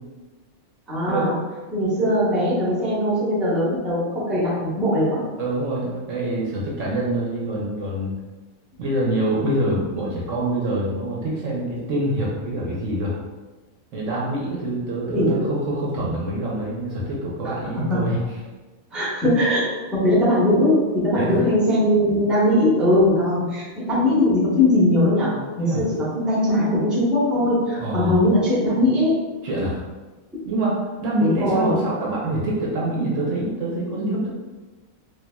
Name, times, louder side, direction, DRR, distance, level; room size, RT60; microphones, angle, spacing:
voice 1, 0.9-1.4 1.7-5.2 15.1-15.4 17.4-18.0 18.9-29.2 31.2-31.7, left 1 dB, ahead, -8 dB, 0.9 m, -20 dB
voice 2, 5.4-8.2 8.8-13.1 13.9-18.2 21.2-21.4 25.6-25.8 27.8-28.2 29.4-29.8 30.4-34.3, right 1 dB, 65° right, -5 dB, 1.0 m, -25 dB
4.2 x 2.5 x 2.2 m, 1.2 s
omnidirectional pair, 1.5 m